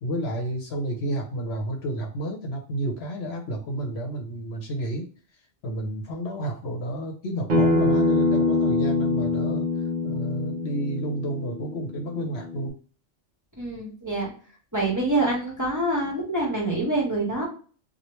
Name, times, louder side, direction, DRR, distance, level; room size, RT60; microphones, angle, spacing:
voice 1, 0.0-5.1 5.6-9.6 10.0-12.8, right 1 dB, 65° left, 1 dB, 1.0 m, -30 dB
Acoustic guitar, 7.5-12.7, left 3 dB, 50° right, 0.8 m, -25 dB
voice 2, 13.6-14.3 14.7-17.4, right 2 dB, 15° right, -4 dB, 1.1 m, -26 dB
2.9 x 2.4 x 3.1 m, 0.40 s
omnidirectional pair, 1.2 m